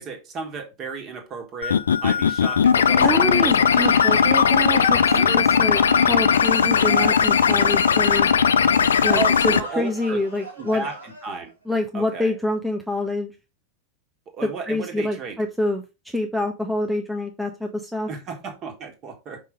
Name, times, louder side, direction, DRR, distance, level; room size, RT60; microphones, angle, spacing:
voice 1, 0.0-3.7 5.1-5.4 9.1-10.2 10.6-11.5 11.9-12.3 14.3-15.4 18.1-19.4, right 5 dB, 30° right, 1.5 m, -33 dB
sound 1, 1.6-9.6, left 7 dB, 70° left, 0.4 m, -18 dB
voice 2, 3.0-5.0 5.3-5.8 6.1-8.3 9.0-10.8 11.7-13.3 14.7-15.8 16.1-18.1, left 1 dB, 5° right, 0.7 m, -26 dB
sound 2, 3.7-11.5, right 1 dB, 85° right, 2.5 m, -35 dB
5.3 x 3.9 x 4.9 m
figure-of-eight pair, 90°, 0 cm